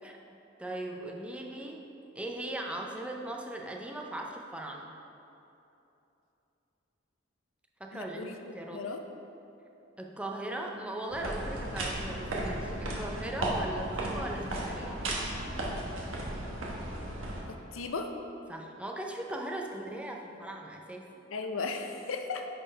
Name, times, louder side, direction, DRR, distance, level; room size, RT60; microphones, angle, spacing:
voice 1, 0.0-4.9 7.8-8.9 10.0-15.1 18.5-21.1, right 1 dB, 5° right, 0 dB, 0.5 m, -39 dB
voice 2, 7.9-9.0 17.5-18.1 21.3-22.5, left 4 dB, 90° left, 5 dB, 0.5 m, -36 dB
sound 1, 11.1-17.4, right 1 dB, 85° right, 1.1 m, -35 dB
10.0 x 4.3 x 3.3 m, 2.9 s
head